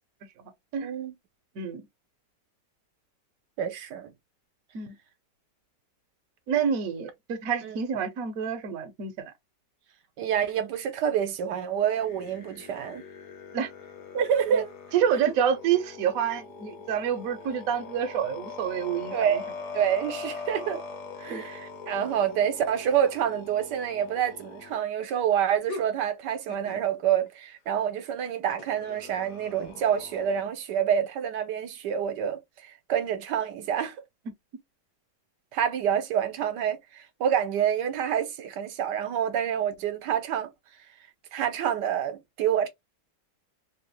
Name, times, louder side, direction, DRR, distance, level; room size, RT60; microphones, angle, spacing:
voice 1, 0.8-1.1 3.6-4.1 7.6-7.8 10.2-13.0 14.1-14.7 19.1-19.5 19.7-20.8 21.2-34.0 35.5-40.5 41.3-42.7, right 9 dB, 80° right, 1.3 m, -27 dB
voice 2, 6.5-9.3 13.5-13.7 14.5-14.6 14.9-19.4 21.3-21.4, right 8 dB, 60° right, 1.0 m, -28 dB
sound 1, 12.0-24.8 25.7-25.9 26.5-26.8 28.6-30.4, left 4 dB, 65° left, 1.5 m, -42 dB
3.4 x 2.8 x 3.1 m
omnidirectional pair, 1.9 m